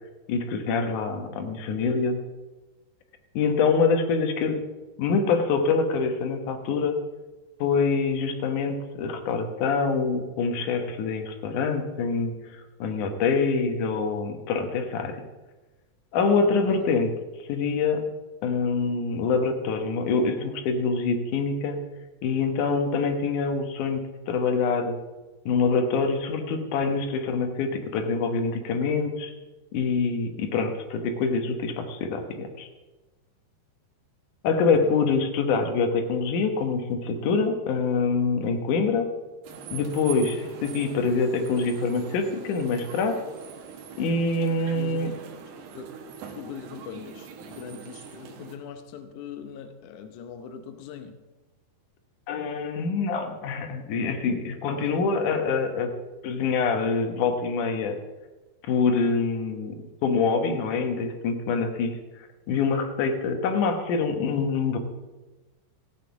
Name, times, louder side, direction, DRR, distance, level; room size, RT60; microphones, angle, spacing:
voice 1, 0.3-2.2 3.3-4.6 5.0-7.0 7.6-15.2 16.1-17.1 17.5-18.0 18.4-21.8 22.2-25.0 25.5-29.3 29.7-32.7 34.4-39.1 39.7-43.2 44.0-45.1 52.3-55.9 56.2-58.0 58.7-59.8 60.0-64.8, left 4 dB, 65° left, 5 dB, 2.3 m, -25 dB
voice 2, 16.4-16.9 34.5-35.0 44.7-45.2 45.7-46.0 46.3-51.2 54.7-55.0, left 7 dB, 90° left, 8 dB, 1.7 m, -41 dB
sound 1, 39.4-48.6, right 6 dB, 80° right, 3.4 m, -43 dB
15.5 x 8.3 x 7.0 m, 1.2 s
omnidirectional pair, 4.8 m